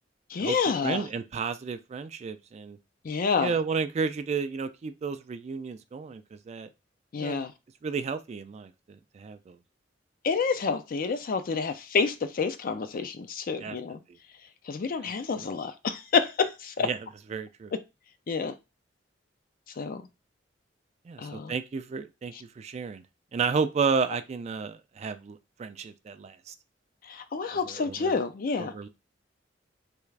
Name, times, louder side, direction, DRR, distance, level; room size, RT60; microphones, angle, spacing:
voice 1, 0.3-1.1 3.0-3.5 7.1-7.5 10.2-14.0 14.7-16.9 18.3-18.5 19.8-20.0 21.2-21.5 22.3-22.4 27.1-28.7, left 5 dB, 50° left, 0.4 m, -28 dB
voice 2, 0.8-2.8 3.4-6.7 7.2-7.4 7.8-9.6 13.6-13.8 15.0-15.1 16.8-17.0 17.3-17.7 21.1-23.0 23.3-26.5 27.5-28.1 28.6-28.9, right 5 dB, 35° right, 0.3 m, -32 dB
3.4 x 2.4 x 3.2 m
head